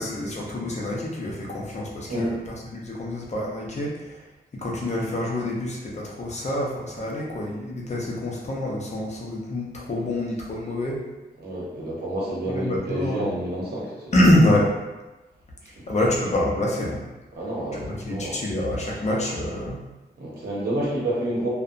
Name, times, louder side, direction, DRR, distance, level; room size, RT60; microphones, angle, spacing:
voice 1, 0.0-4.1 4.5-11.0 12.4-13.3 14.1-14.7 15.9-17.0 17.7-19.8, left 1 dB, 40° left, -3 dB, 0.5 m, -26 dB
voice 2, 11.4-14.1 15.6-15.9 17.3-18.4 20.2-21.5, right 1 dB, 70° right, -5 dB, 0.8 m, -29 dB
2.7 x 2.1 x 2.5 m, 1.1 s
wide cardioid pair, 140°, 17 cm